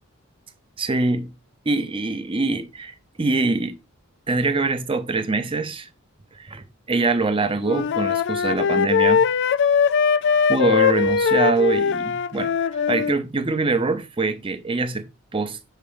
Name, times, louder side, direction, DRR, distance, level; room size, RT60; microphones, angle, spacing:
voice 1, 0.8-1.3 1.7-3.8 4.3-5.9 6.3-9.2 10.5-15.1 15.3-15.6, right 3 dB, 25° right, 0.6 m, -24 dB
Wind instrument woodwind instrument, 7.6-13.1, left 6 dB, 55° left, 0.3 m, -20 dB
6.5 x 3.0 x 5.0 m
head